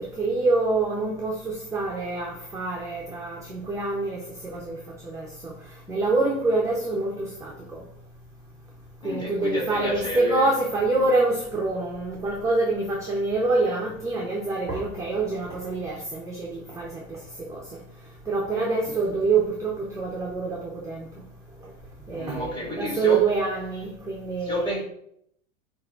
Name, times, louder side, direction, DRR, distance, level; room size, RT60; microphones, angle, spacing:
voice 1, 0.0-4.8 5.0-5.5 5.9-7.8 9.0-17.2 17.5-17.8 18.3-21.1 22.1-24.7, right 3 dB, 10° right, 0.5 m, -26 dB
voice 2, 9.0-10.5 22.2-23.2 24.4-24.8, equal, 10° left, 1.7 m, -30 dB
7.7 x 2.6 x 2.4 m
hypercardioid pair, 110°, 38 cm